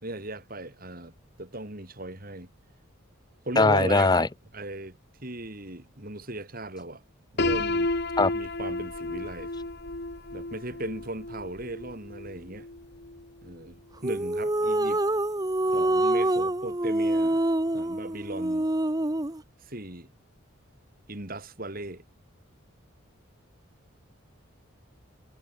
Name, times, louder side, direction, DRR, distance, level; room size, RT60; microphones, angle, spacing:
voice 1, 0.0-2.5 3.4-7.0 7.3-7.9 8.3-9.5 10.3-12.7 13.4-15.0 15.7-17.4 17.7-18.7 19.6-20.1 21.1-22.0, right 2 dB, 45° right, 3.6 m, -37 dB
voice 2, 3.6-4.3 8.2-8.3, left 3 dB, 20° left, 0.6 m, -20 dB
Piano, 7.4-13.2, left 2 dB, 50° left, 2.0 m, -32 dB
sound 1, 14.0-19.4, right 1 dB, 20° right, 0.8 m, -26 dB
head